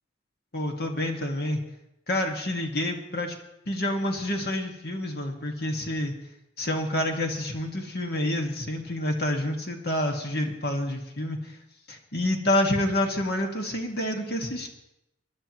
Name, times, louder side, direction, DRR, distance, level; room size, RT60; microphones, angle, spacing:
voice 1, 0.5-1.6 2.1-3.4 3.7-6.1 6.6-11.4 11.9-14.7, left 1 dB, 60° left, 2 dB, 1.9 m, -28 dB
24.0 x 11.5 x 3.1 m, 0.86 s
head